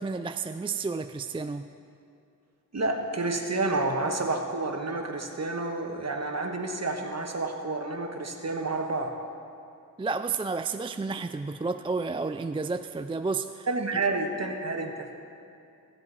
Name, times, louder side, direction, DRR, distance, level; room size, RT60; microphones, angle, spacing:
voice 1, 0.0-1.7 10.0-13.7, right 4 dB, 15° right, 9 dB, 0.3 m, -31 dB
voice 2, 2.7-9.1 13.7-15.1, right 2 dB, 45° right, 3 dB, 1.4 m, -29 dB
16.0 x 7.6 x 4.1 m, 2.6 s
cardioid pair, 45°, 36 cm